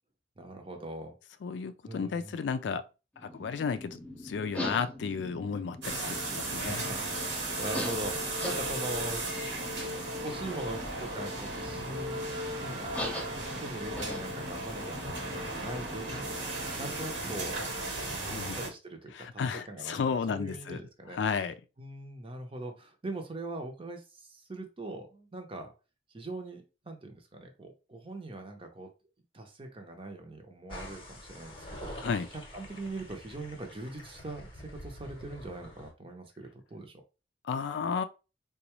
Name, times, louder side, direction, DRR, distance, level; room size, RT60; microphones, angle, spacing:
voice 1, 0.4-1.1 1.8-2.4 6.0-9.8 10.1-12.3 12.6-13.1 13.6-16.3 16.7-17.6 18.2-19.4 19.7-21.2 21.8-25.7 26.1-28.9 29.3-31.9 32.3-36.9, right 2 dB, 30° right, 0.7 m, -41 dB
voice 2, 1.4-2.8 3.2-6.8 18.3-18.6 19.1-20.8 21.1-21.6 32.0-32.3 37.4-38.0, left 5 dB, 85° left, 0.4 m, -33 dB
sound 1, 3.1-17.4, left 1 dB, 10° left, 0.5 m, -43 dB
sound 2, 5.8-18.7, right 2 dB, 80° right, 1.1 m, -36 dB
sound 3, 30.7-35.9, left 1 dB, 30° left, 0.9 m, -46 dB
3.8 x 2.3 x 2.9 m
head